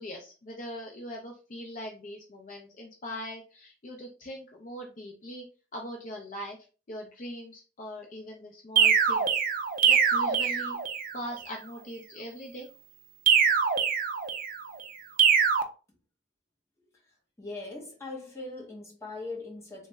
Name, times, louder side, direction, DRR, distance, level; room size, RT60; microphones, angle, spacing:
voice 1, 0.0-5.4 5.7-6.6 6.9-9.3 9.8-10.8 11.1-12.7, equal, 40° left, 0.4 m, -41 dB
sound 1, 8.8-11.2 13.3-14.6 15.2-15.6, right 7 dB, 45° right, 0.4 m, -23 dB
voice 2, 17.4-19.9, left 2 dB, 15° left, 0.9 m, -40 dB
3.2 x 2.0 x 3.2 m
head